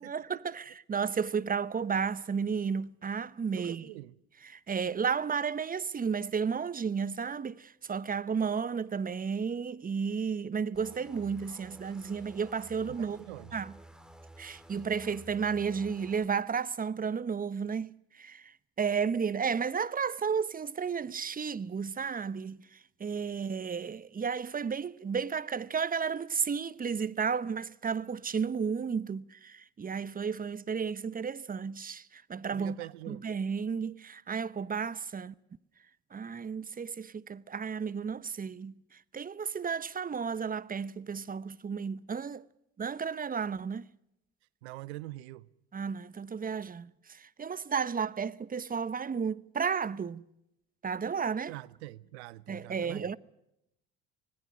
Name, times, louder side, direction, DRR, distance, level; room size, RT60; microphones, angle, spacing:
voice 1, 0.0-3.8 4.5-13.2 13.5-13.7 14.4-18.5 18.8-22.6 23.0-32.7 33.1-35.3 36.1-38.7 39.1-42.4 42.8-43.9 45.7-50.2 50.8-51.5 52.5-53.2, right 6 dB, 25° right, 1.0 m, -33 dB
voice 2, 3.5-4.2 12.9-13.6 32.5-33.3 44.6-45.5 51.5-53.2, right 18 dB, 85° right, 0.8 m, -44 dB
sound 1, 10.7-16.3, right 1 dB, ahead, 3.4 m, -52 dB
25.5 x 19.0 x 6.2 m
hypercardioid pair, 70°, 32 cm